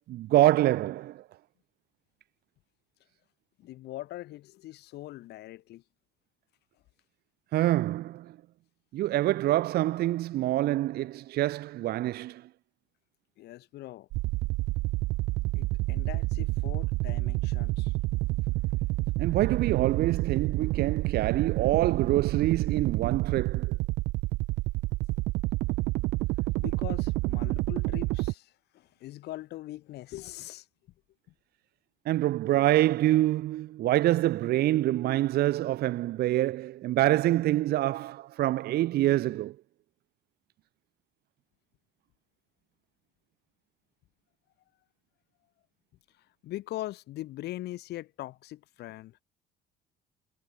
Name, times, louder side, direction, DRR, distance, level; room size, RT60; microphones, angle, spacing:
voice 1, 0.1-1.3 7.5-8.4 8.9-12.5 19.2-23.8 32.0-39.6, right 15 dB, 70° right, 0.9 m, -26 dB
voice 2, 3.6-5.8 13.4-14.1 15.6-18.0 26.6-30.7 46.2-49.2, left 16 dB, 75° left, 4.1 m, -41 dB
sound 1, 14.1-28.3, right 21 dB, 85° right, 0.5 m, -29 dB
cardioid pair, 110°, 17 cm